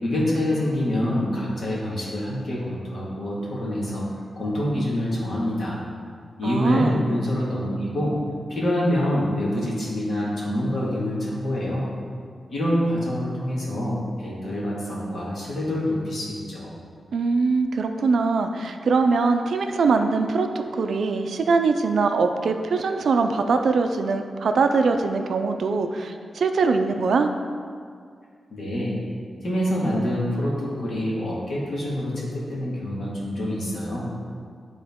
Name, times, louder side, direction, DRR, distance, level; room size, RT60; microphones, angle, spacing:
voice 1, 0.0-4.0 4.4-5.8 6.4-8.1 8.5-11.9 12.5-16.8 28.5-29.0 29.4-34.1, left 1 dB, 50° left, -6 dB, 1.8 m, -26 dB
voice 2, 6.4-7.0 17.1-27.3, right 4 dB, 70° right, 6 dB, 0.4 m, -22 dB
10.5 x 3.8 x 3.6 m, 2.1 s
wide cardioid pair, 160°, 0 cm